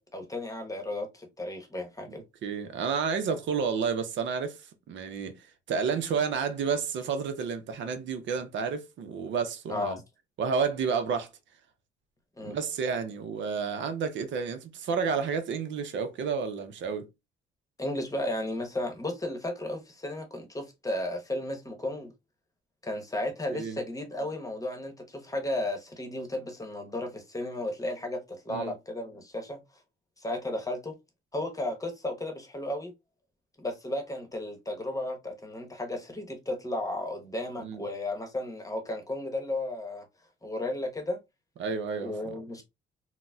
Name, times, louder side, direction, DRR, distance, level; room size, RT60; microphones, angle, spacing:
voice 1, 0.0-2.2 9.7-10.0 12.4-12.6 17.8-22.1 22.8-29.6 30.2-31.0 31.3-32.9 33.6-40.0 40.4-41.2 42.0-42.6, left 1 dB, 15° left, 0.9 m, -34 dB
voice 2, 2.4-4.6 4.9-10.0 10.4-11.3 12.5-17.1 23.5-23.8 28.5-28.7 37.6-37.8 41.6-42.1, right 6 dB, 70° right, 0.6 m, -30 dB
3.9 x 2.1 x 2.2 m
cardioid pair, 90°, 20 cm